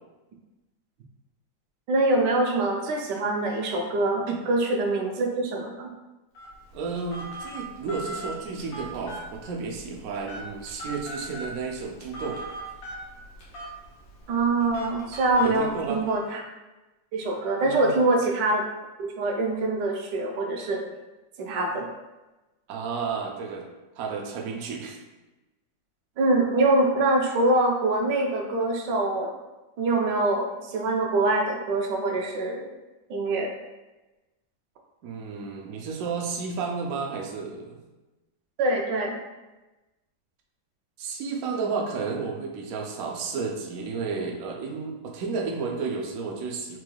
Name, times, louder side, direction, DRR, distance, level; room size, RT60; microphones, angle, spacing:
voice 1, 1.9-5.9 14.3-16.4 17.1-18.7 19.0-20.8 21.4-21.9 26.2-29.3 29.8-32.7 33.1-33.5 38.6-39.2, right 2 dB, 70° right, 1 dB, 1.1 m, -24 dB
Telephone, 6.3-16.2, right 1 dB, 70° left, 1.7 m, -40 dB
voice 2, 6.7-12.4 15.4-16.0 17.6-17.9 22.7-23.6 24.0-25.0 35.0-37.8 41.0-46.8, right 5 dB, 90° right, 0 dB, 0.7 m, -32 dB
4.5 x 3.1 x 2.3 m, 1.1 s
omnidirectional pair, 2.1 m